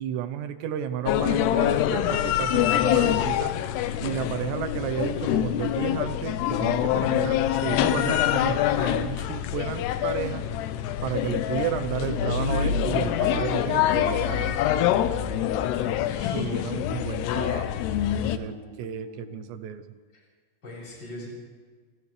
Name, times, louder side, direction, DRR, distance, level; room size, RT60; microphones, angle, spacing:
voice 1, 0.0-3.5 4.0-10.4 11.0-14.6 16.3-17.7 18.2-19.8, right 10 dB, 85° right, 10 dB, 3.1 m, -32 dB
sound 1, 1.0-18.4, left 11 dB, 80° left, 2.9 m, -25 dB
voice 2, 15.4-16.5 18.2-19.7 20.6-21.3, left 1 dB, 25° left, -5 dB, 8.4 m, -43 dB
29.0 x 27.5 x 3.4 m, 1.5 s
omnidirectional pair, 4.9 m